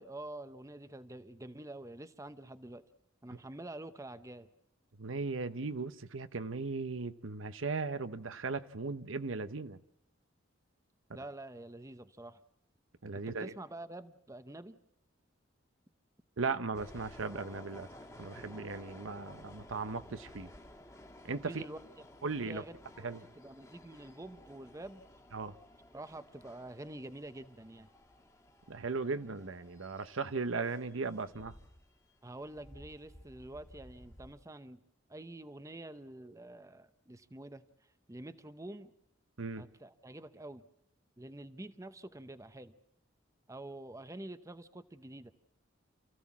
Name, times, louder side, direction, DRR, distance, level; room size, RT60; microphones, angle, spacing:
voice 1, 0.0-2.8 3.2-4.5 11.1-12.4 13.1-14.8 21.5-21.8 22.5-23.1 23.4-25.0 25.9-27.9 32.2-34.8 35.1-37.6 38.1-38.9 39.6-40.6 41.2-42.7 43.5-45.3, right 1 dB, 15° right, 0.7 m, -47 dB
voice 2, 5.0-9.8 13.0-13.5 16.4-17.9 18.2-20.5 21.3-21.6 22.2-22.6 23.0-23.2 25.3-25.5 28.7-31.5 39.4-39.6, right 4 dB, 85° right, 0.9 m, -37 dB
sound 1, 16.7-34.3, left 1 dB, 15° left, 1.8 m, -55 dB
28.0 x 15.0 x 7.3 m
head